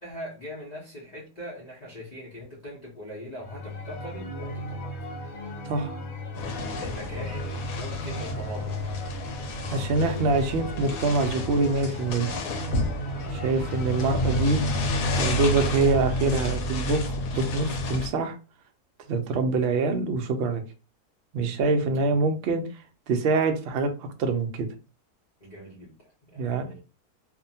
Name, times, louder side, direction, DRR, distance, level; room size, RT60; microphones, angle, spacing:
voice 1, 0.0-5.1 6.7-8.8 21.9-22.4 25.4-26.8, equal, 40° left, 0.6 m, -41 dB
sound 1, 3.4-16.5, left 1 dB, 65° left, 1.0 m, -36 dB
voice 2, 5.7-6.0 9.7-12.3 13.3-14.6 15.2-18.4 19.1-20.6 21.3-22.6 23.1-24.7 26.3-26.7, right 3 dB, 80° right, 0.5 m, -25 dB
sound 2, 6.3-18.1, left 1 dB, 85° left, 1.1 m, -30 dB
2.7 x 2.1 x 2.6 m
omnidirectional pair, 1.7 m